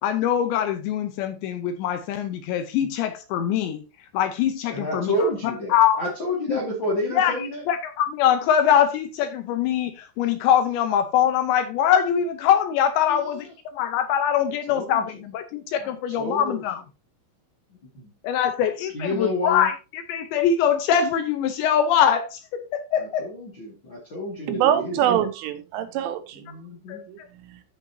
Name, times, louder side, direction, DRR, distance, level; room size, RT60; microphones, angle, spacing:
voice 1, 0.0-3.8 4.1-6.0 6.5-6.6 7.1-7.4 7.7-16.8 18.2-23.3 26.9-27.3, left 9 dB, 80° left, 2.9 m, -23 dB
voice 2, 4.7-7.6 13.1-13.2 14.7-15.0 15.8-15.9 16.2-16.6 18.9-19.7 23.0-25.1 26.4-27.0, left 1 dB, 45° left, 1.5 m, -29 dB
voice 3, 24.5-26.4 27.1-27.6, right 10 dB, 80° right, 3.4 m, -24 dB
13.5 x 5.8 x 2.8 m
omnidirectional pair, 5.7 m